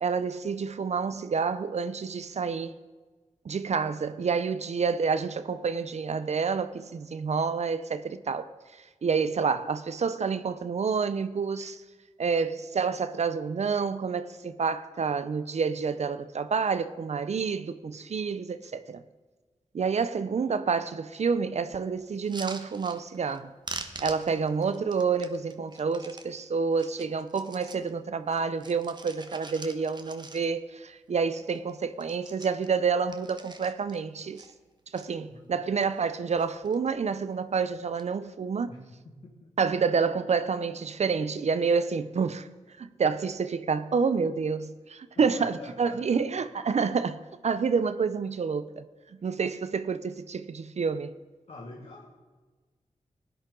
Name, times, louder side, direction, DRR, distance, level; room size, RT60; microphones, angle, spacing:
voice 1, 0.0-2.7 3.4-11.8 12.2-19.0 19.7-23.5 24.0-34.4 34.9-38.7 39.6-42.5 42.8-48.8 49.2-51.1, right 5 dB, 60° right, 0.6 m, -28 dB
sound 1, 22.1-23.4 23.6-26.3 26.7-27.9 28.3-30.7 31.1-31.2 31.4-31.7 32.0-34.0 34.3-35.1 35.6-36.1 36.4-36.9 37.8-38.0, right 3 dB, 35° right, 1.2 m, -44 dB
voice 2, 38.7-39.5 45.2-46.5 49.2-49.3 51.5-52.1, left 2 dB, 60° left, 1.7 m, -47 dB
16.0 x 10.5 x 3.8 m
cardioid pair, 50°, 13 cm